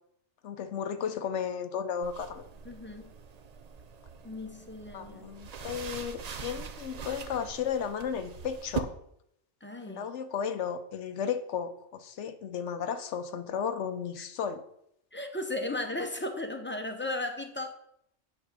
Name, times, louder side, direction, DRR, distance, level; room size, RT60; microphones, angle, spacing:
voice 1, 0.4-2.4 4.9-8.9 9.9-14.6, left 7 dB, 70° left, 10 dB, 0.9 m, -34 dB
sound 1, 2.0-8.8, right 6 dB, 50° right, 0.5 m, -42 dB
voice 2, 2.6-3.1 4.2-5.3 9.6-10.1 15.1-17.7, left 2 dB, 15° left, 6 dB, 0.5 m, -35 dB
8.6 x 3.6 x 6.6 m, 0.75 s
omnidirectional pair, 1.3 m